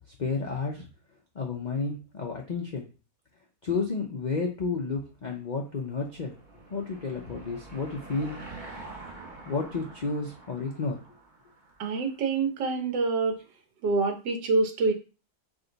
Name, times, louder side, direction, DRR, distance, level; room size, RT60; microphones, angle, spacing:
voice 1, 0.2-0.9 1.3-2.9 3.6-6.3 6.7-8.4 9.4-11.0, left 4 dB, 85° left, -1 dB, 0.4 m, -31 dB
Car passing by / Engine, 5.4-12.1, right 3 dB, 35° right, 0.9 m, -46 dB
voice 2, 11.8-13.4 13.8-14.9, right 3 dB, 80° right, 5 dB, 1.5 m, -26 dB
4.9 x 2.6 x 3.9 m, 0.33 s
omnidirectional pair, 1.8 m